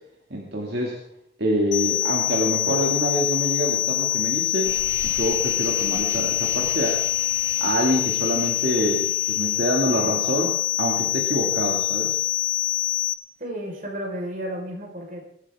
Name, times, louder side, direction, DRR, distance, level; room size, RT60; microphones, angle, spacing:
voice 1, 0.3-1.0 1.4-4.8 5.0-7.0 7.6-12.2, right 1 dB, 65° right, -1 dB, 2.4 m, -26 dB
sound 1, 1.7-13.1, left 14 dB, 70° left, 1.0 m, -25 dB
sound 2, 4.6-9.8, right 2 dB, 15° right, 2.1 m, -40 dB
voice 2, 13.4-15.2, equal, 45° right, -1 dB, 4.7 m, -32 dB
22.0 x 13.0 x 3.6 m, 0.77 s
head